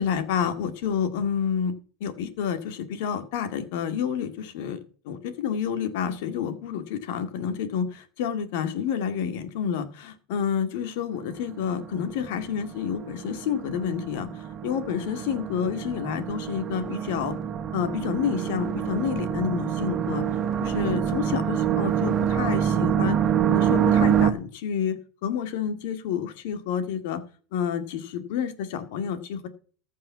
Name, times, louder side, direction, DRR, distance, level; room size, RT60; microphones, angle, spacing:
voice 1, 0.0-1.7 2.0-4.8 5.1-17.4 17.7-20.2 20.6-23.2 23.5-27.2 27.5-29.5, left 8 dB, 70° left, 10 dB, 2.1 m, -29 dB
sound 1, 11.1-24.3, right 8 dB, 30° right, 1.7 m, -26 dB
14.5 x 5.7 x 7.3 m, 0.42 s
supercardioid pair, 120°, 0 cm